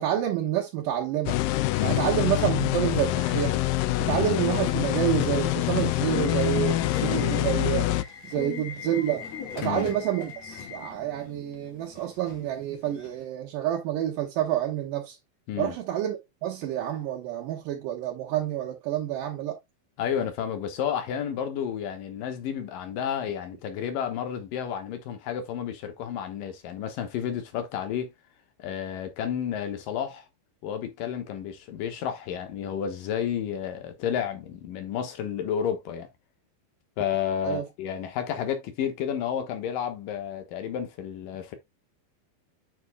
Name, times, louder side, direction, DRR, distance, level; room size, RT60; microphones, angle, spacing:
voice 1, 0.0-1.4 1.8-3.6 4.0-9.2 9.5-15.2 15.6-19.6 37.4-37.7, right 11 dB, 70° right, 2.5 m, -28 dB
sound 1, 1.3-8.0, left 17 dB, 85° left, 2.0 m, -25 dB
Subway metro underground / Alarm, 3.4-13.2, left 7 dB, 55° left, 2.3 m, -40 dB
voice 2, 20.0-28.1 28.6-30.3 30.6-36.1 37.0-41.6, left 8 dB, 70° left, 2.6 m, -31 dB
9.5 x 6.0 x 2.2 m
omnidirectional pair, 4.6 m